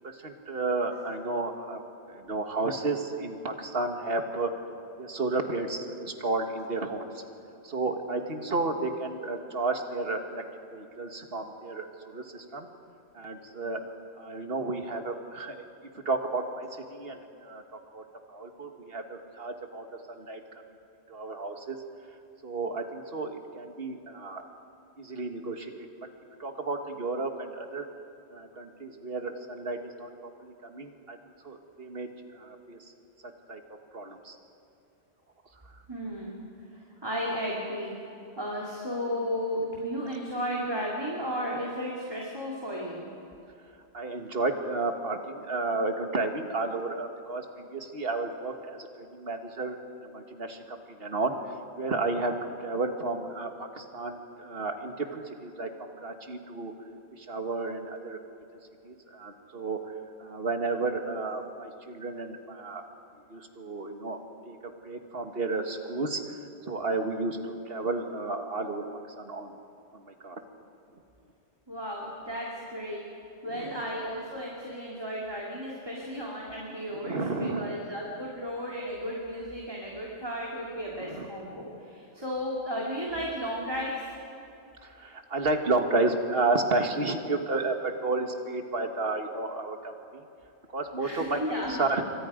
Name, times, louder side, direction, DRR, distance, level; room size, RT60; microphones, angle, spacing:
voice 1, 0.2-1.8 2.1-4.5 5.0-7.2 7.6-10.4 10.7-12.7 13.2-13.9 14.2-15.6 16.1-17.6 17.9-18.0 18.3-20.4 21.1-21.8 22.4-24.5 25.0-25.9 26.4-27.9 28.3-30.1 30.4-31.2 31.4-32.1 32.3-32.8 33.5-33.6 33.9-34.4 43.9-49.8 50.0-50.6 50.9-51.3 51.8-56.7 57.2-58.2 58.9-59.9 60.2-62.8 63.3-64.2 64.5-66.2 66.7-68.8 69.2-69.5 69.9-70.4 73.5-73.7 77.0-77.7 81.1-81.3 84.8-90.2 90.7-91.4 91.7-92.0, right 3 dB, 60° right, 5 dB, 1.9 m, -32 dB
voice 2, 35.9-36.4 37.0-37.9 38.4-43.1 71.7-73.0 73.4-84.0 91.0-91.8, equal, 20° right, -4 dB, 3.0 m, -34 dB
27.5 x 24.5 x 5.2 m, 2.8 s
omnidirectional pair, 1.1 m